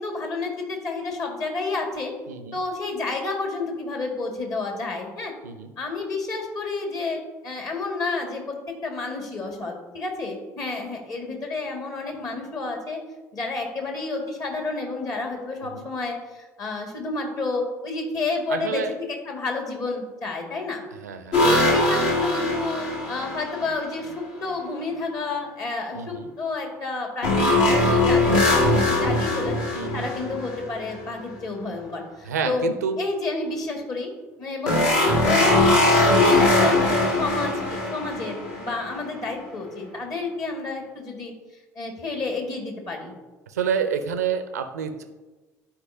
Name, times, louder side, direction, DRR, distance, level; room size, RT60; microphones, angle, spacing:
voice 1, 0.0-2.1 2.5-5.3 5.8-13.0 13.3-20.8 21.4-29.6 29.9-32.7 33.0-34.1 34.4-41.3 41.8-43.1, left 3 dB, 45° left, 2 dB, 1.8 m, -30 dB
voice 2, 2.3-2.6 5.4-5.7 15.7-15.9 18.5-18.9 21.0-21.8 25.9-26.3 28.0-28.2 29.7-30.1 32.3-33.0 43.5-45.0, right 6 dB, 80° right, 9 dB, 0.5 m, -29 dB
sound 1, 21.3-23.8 27.2-31.0 34.7-39.0, left 2 dB, 65° left, 1.5 m, -21 dB
11.5 x 4.8 x 2.7 m, 1.2 s
figure-of-eight pair, 55°, 9 cm